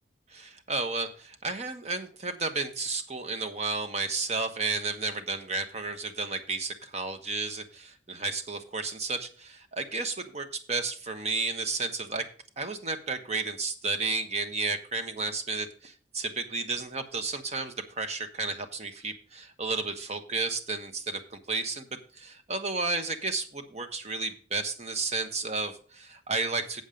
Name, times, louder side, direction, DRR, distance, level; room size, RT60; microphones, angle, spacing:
voice 1, 0.3-12.3 12.6-26.8, right 3 dB, 40° right, 7 dB, 1.1 m, -32 dB
7.9 x 7.4 x 5.1 m, 0.42 s
head